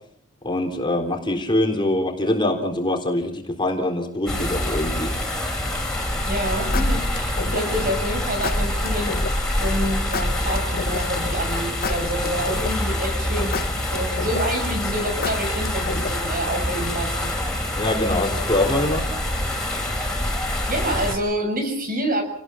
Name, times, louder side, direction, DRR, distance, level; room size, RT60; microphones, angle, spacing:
voice 1, 0.4-5.1 17.7-19.1, left 1 dB, 20° left, 3 dB, 3.8 m, -23 dB
sound 1, 4.3-21.1, left 1 dB, 5° left, 6.1 m, -25 dB
sound 2, 5.9-6.2 6.7-7.9 8.4-9.4 10.1-11.3 11.8-13.0 13.5-14.7 15.2-16.4, left 5 dB, 45° left, 1.0 m, -31 dB
voice 2, 6.2-9.2 9.6-13.6 13.9-17.3 20.7-22.2, right 1 dB, 45° right, 6 dB, 6.8 m, -27 dB
30.0 x 19.5 x 5.8 m, 0.67 s
head